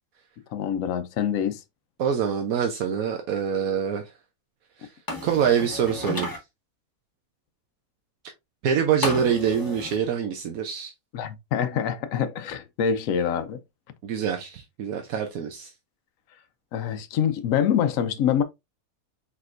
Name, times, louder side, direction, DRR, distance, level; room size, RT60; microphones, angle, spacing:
voice 1, 0.5-1.6 11.1-13.6 16.7-18.4, left 8 dB, 75° left, 1.1 m, -25 dB
voice 2, 2.0-4.0 4.8-4.9 5.2-6.3 8.6-10.9 14.0-15.7, right 7 dB, 80° right, 1.2 m, -25 dB
sound 1, 5.1-6.4 9.0-10.0, left 2 dB, 15° left, 0.9 m, -32 dB
4.5 x 4.2 x 2.5 m
omnidirectional pair, 1.5 m